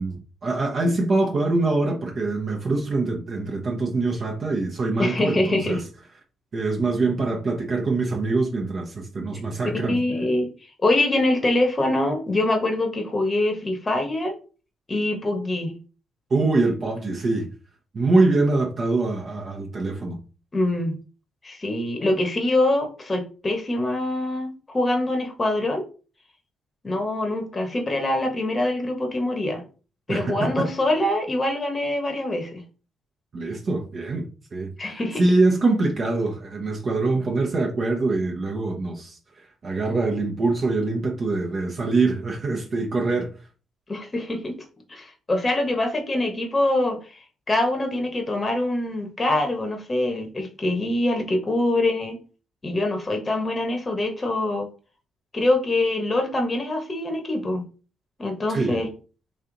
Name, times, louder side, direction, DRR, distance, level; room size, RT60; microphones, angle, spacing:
voice 1, 0.0-5.8 6.5-10.0 16.3-17.5 17.9-20.2 30.1-30.7 33.3-34.3 34.5-43.3 58.5-58.8, right 3 dB, 45° right, 0.8 m, -24 dB
voice 2, 5.0-5.8 9.6-14.4 14.9-15.8 20.5-20.9 21.4-25.8 26.8-29.6 30.1-32.6 34.8-35.2 43.9-44.5 44.9-52.2 52.6-54.7 55.3-57.7 58.2-58.9, left 1 dB, 25° left, 0.9 m, -24 dB
3.2 x 2.8 x 3.7 m
cardioid pair, 90°, 0 cm